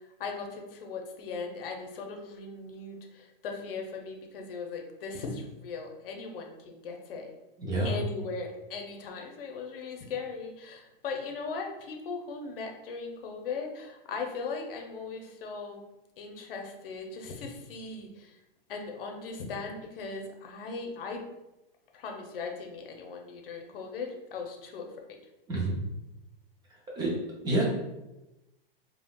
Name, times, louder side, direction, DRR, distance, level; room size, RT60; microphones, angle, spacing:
voice 1, 0.0-7.3 7.8-15.8 16.2-18.4 18.7-21.2 21.9-24.9, left 4 dB, 70° left, 2 dB, 0.7 m, -38 dB
voice 2, 7.6-7.9 25.5-25.7 27.0-27.2 27.4-27.6, right 2 dB, 15° right, -3 dB, 0.4 m, -27 dB
3.5 x 2.3 x 2.3 m, 0.96 s
hypercardioid pair, 135°, 29 cm